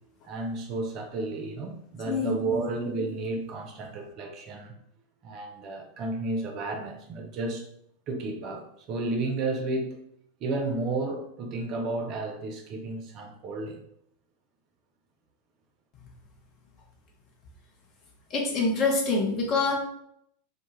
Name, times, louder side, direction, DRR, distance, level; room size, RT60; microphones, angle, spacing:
voice 1, 0.2-4.7 5.2-7.7 8.1-10.0 10.4-13.8, right 2 dB, 40° right, 3 dB, 0.5 m, -32 dB
voice 2, 2.1-2.7 18.3-19.7, left 3 dB, 35° left, 0 dB, 0.7 m, -26 dB
2.2 x 2.1 x 2.9 m, 0.72 s
figure-of-eight pair, 90°, 0 cm